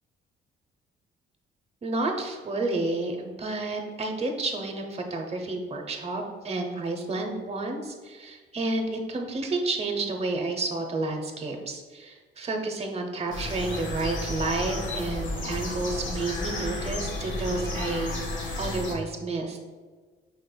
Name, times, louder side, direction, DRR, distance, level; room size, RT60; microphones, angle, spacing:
voice 1, 1.8-18.1 18.6-19.6, right 2 dB, 30° right, 3 dB, 0.8 m, -30 dB
sound 1, 13.3-18.9, left 2 dB, 70° left, 1.1 m, -32 dB
5.3 x 3.9 x 2.2 m, 1.5 s
cardioid pair, 90°, 20 cm